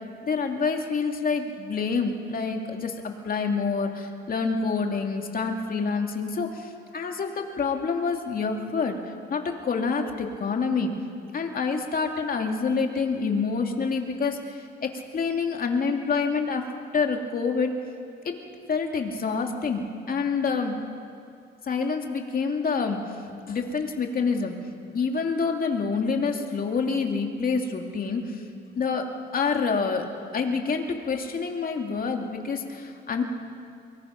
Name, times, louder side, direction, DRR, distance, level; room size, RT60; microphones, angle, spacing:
voice 1, 0.2-3.0 3.2-9.0 9.3-10.9 11.3-17.8 18.2-18.3 18.7-20.8 21.6-23.0 23.5-24.6 24.9-28.4 28.8-30.0 30.3-33.2, left 5 dB, 45° left, 3 dB, 2.6 m, -27 dB
24.0 x 21.0 x 6.0 m, 2.7 s
cardioid pair, 90°, 20 cm